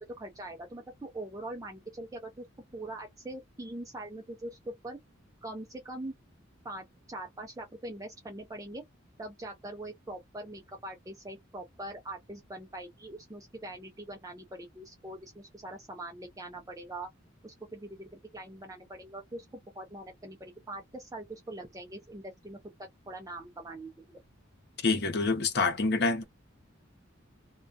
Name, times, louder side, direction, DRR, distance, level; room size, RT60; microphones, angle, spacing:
voice 1, 0.2-2.5 2.7-5.0 5.4-6.1 6.6-8.8 9.2-17.1 17.4-19.5 19.7-22.6 23.1-24.2, right 1 dB, 15° right, 0.4 m, -42 dB
voice 2, 24.8-26.2, left 3 dB, 55° left, 0.7 m, -26 dB
2.3 x 2.2 x 2.5 m
head